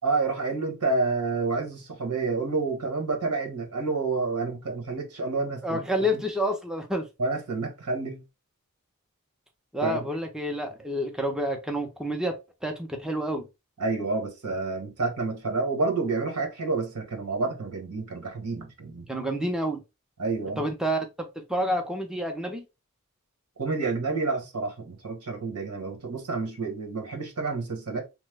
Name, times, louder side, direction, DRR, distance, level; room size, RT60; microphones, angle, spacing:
voice 1, 0.0-6.2 7.2-8.2 9.8-10.0 13.8-19.1 20.2-20.6 23.6-28.0, right 3 dB, 90° right, 1.1 m, -29 dB
voice 2, 5.6-7.1 9.7-13.5 19.1-19.8 20.6-22.6, equal, 5° right, 0.4 m, -29 dB
3.1 x 2.0 x 3.2 m
head